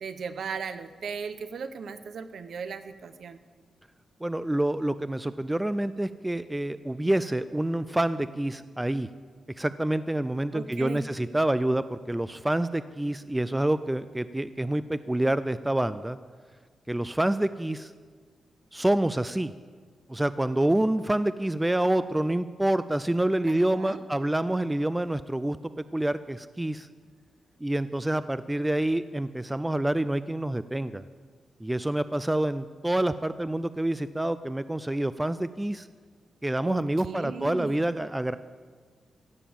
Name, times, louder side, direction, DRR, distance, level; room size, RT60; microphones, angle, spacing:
voice 1, 0.0-3.4 10.5-11.0 23.5-24.0 36.6-37.9, right 5 dB, 60° right, 11 dB, 0.8 m, -37 dB
voice 2, 4.2-9.1 9.6-16.2 16.9-17.9 18.7-19.5 20.1-26.9 27.6-31.0 31.6-35.9 36.4-38.4, right 1 dB, 10° right, 14 dB, 0.3 m, -27 dB
16.0 x 7.2 x 8.6 m, 1.6 s
wide cardioid pair, 160°, 0 cm